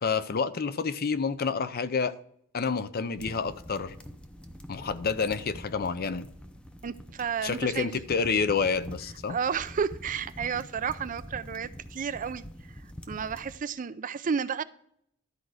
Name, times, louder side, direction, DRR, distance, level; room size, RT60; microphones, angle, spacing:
voice 1, 0.0-2.1 2.5-4.0 4.7-6.3 7.4-9.4, left 5 dB, 45° left, 0.5 m, -28 dB
sound 1, 3.2-13.6, equal, 5° left, 0.7 m, -45 dB
voice 2, 6.8-7.9 9.3-12.4 13.1-14.6, right 6 dB, 40° right, 0.4 m, -31 dB
12.0 x 4.6 x 6.3 m
head